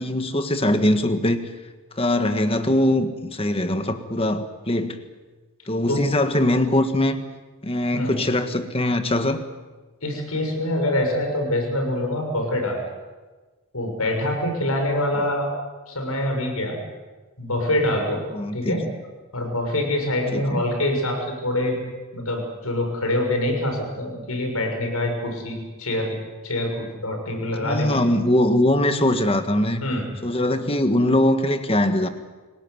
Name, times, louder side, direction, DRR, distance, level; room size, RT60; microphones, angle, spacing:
voice 1, 0.0-1.5 2.0-5.0 5.7-7.2 7.6-9.4 18.3-18.8 20.3-20.7 27.6-29.8 30.2-32.1, left 1 dB, 25° left, 8 dB, 1.6 m, -22 dB
voice 2, 10.0-12.8 13.7-15.5 15.9-16.8 17.4-18.2 18.5-18.8 19.3-21.8 22.1-26.1 26.4-28.0 29.8-30.0, left 1 dB, 80° left, 3 dB, 6.7 m, -25 dB
27.0 x 18.0 x 9.6 m, 1.3 s
head